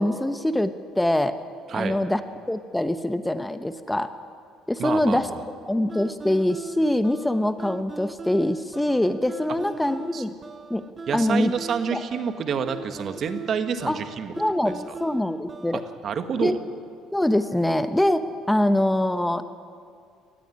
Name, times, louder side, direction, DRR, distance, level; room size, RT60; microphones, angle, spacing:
voice 1, 0.0-1.3 1.7-2.2 2.5-4.1 4.7-5.3 5.7-10.3 10.7-10.8 11.1-11.5 11.9-12.0 13.9-14.0 14.4-15.8 16.4-16.6 17.1-19.4, left 1 dB, 10° left, 10 dB, 1.0 m, -24 dB
voice 2, 4.8-5.4 10.1-10.2 11.1-14.3 14.6-14.7 16.0-16.6, right 6 dB, 50° right, 8 dB, 1.6 m, -28 dB
sound 1, 5.9-16.0, right 4 dB, 30° right, 0.8 m, -40 dB
19.5 x 14.5 x 9.9 m, 2.2 s
supercardioid pair, 75°, 0 cm